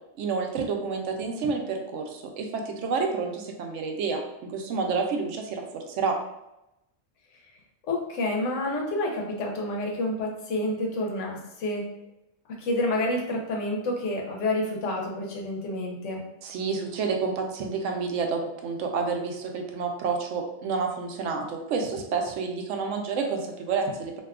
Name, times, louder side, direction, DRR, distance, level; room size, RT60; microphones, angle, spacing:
voice 1, 0.2-4.2 4.5-6.2 16.4-24.1, right 5 dB, 85° right, 3 dB, 0.9 m, -29 dB
voice 2, 7.9-11.8 12.6-16.2, left 1 dB, 85° left, 0 dB, 1.1 m, -29 dB
2.7 x 2.3 x 3.5 m, 0.89 s
omnidirectional pair, 1.2 m